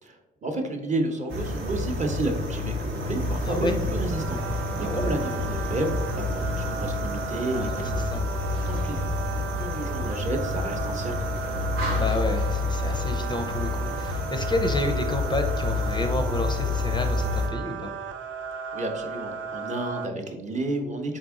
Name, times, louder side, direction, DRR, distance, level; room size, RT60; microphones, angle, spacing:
voice 1, 0.0-8.0 8.7-9.0 9.4-11.7 18.7-21.2, right 2 dB, 35° right, 4 dB, 0.8 m, -31 dB
sound 1, 1.2-20.1, right 6 dB, 70° right, 0.4 m, -36 dB
sound 2, 1.3-17.5, left 2 dB, 90° right, 0.9 m, -29 dB
voice 2, 4.7-5.1 7.5-8.3 11.9-18.0, left 1 dB, 25° left, 5 dB, 0.4 m, -30 dB
4.0 x 3.5 x 3.6 m, 1.1 s
cardioid pair, 90°, 20 cm